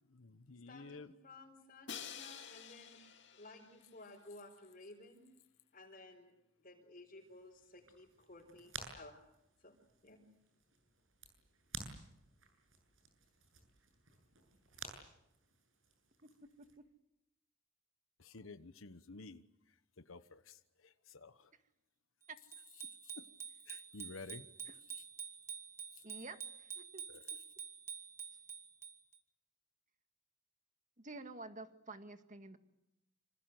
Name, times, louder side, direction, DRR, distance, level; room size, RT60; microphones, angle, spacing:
voice 1, 0.1-1.1 18.2-19.4 20.0-21.5 23.2-23.3 23.7-24.5 27.1-27.2, left 3 dB, 90° left, 11 dB, 1.1 m, -52 dB
voice 2, 0.7-3.0 3.3-5.3 5.7-9.2 9.6-9.8 10.0-10.3, left 2 dB, 45° left, -2 dB, 4.4 m, -56 dB
Crash cymbal, 1.9-3.9, left 7 dB, 60° left, 2.5 m, -49 dB
sound 1, 7.2-16.8, right 4 dB, 80° right, 8.0 m, -54 dB
voice 3, 16.2-16.8 22.3-22.4 24.7-24.8 26.0-27.0 31.0-32.6, right 3 dB, 40° right, 8 dB, 1.9 m, -50 dB
Bicycle bell, 22.5-29.2, right 7 dB, 15° right, 2.1 m, -48 dB
27.0 x 26.5 x 7.9 m, 0.85 s
head